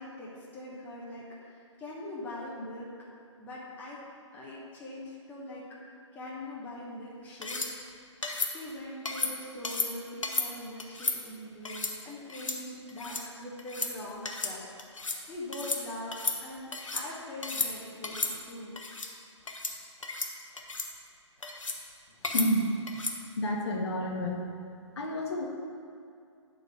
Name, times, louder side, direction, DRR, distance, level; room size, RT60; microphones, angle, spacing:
voice 1, 0.0-2.9 3.4-4.0 4.3-5.6 6.1-7.7 8.1-18.8, left 1 dB, 10° left, -6 dB, 0.9 m, -42 dB
sound 1, 7.4-7.7 8.2-8.5 9.1-9.3 9.6-9.9 10.2-10.5 10.8-11.2 11.6-11.9 12.3-12.6 12.9-13.2 13.6-13.9 14.2-14.5 14.8-15.2 15.5-15.8 16.1-17.0 17.4-17.7 18.0-18.3 18.8-19.1 19.5-19.7 20.0-20.3 20.6-20.9 21.4-21.8 22.2-22.5 22.9-23.2, left 3 dB, 85° left, 0.9 m, -33 dB
voice 2, 22.3-22.7 23.4-24.5 25.0-25.4, equal, 55° left, 0 dB, 1.1 m, -29 dB
9.0 x 3.9 x 4.7 m, 2.4 s
figure-of-eight pair, 140°, 16 cm